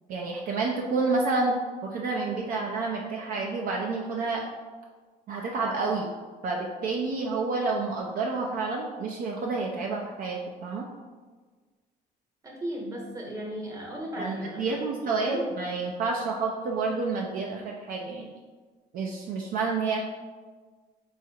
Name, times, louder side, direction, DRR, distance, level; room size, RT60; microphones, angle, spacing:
voice 1, 0.1-4.4 5.3-6.1 6.4-10.8 14.2-18.3 18.9-20.0, right 3 dB, 55° right, -1 dB, 0.4 m, -29 dB
voice 2, 12.4-14.8 15.0-15.4, equal, 20° right, -2 dB, 0.9 m, -36 dB
4.0 x 2.4 x 2.8 m, 1.4 s
cardioid pair, 110°, 17 cm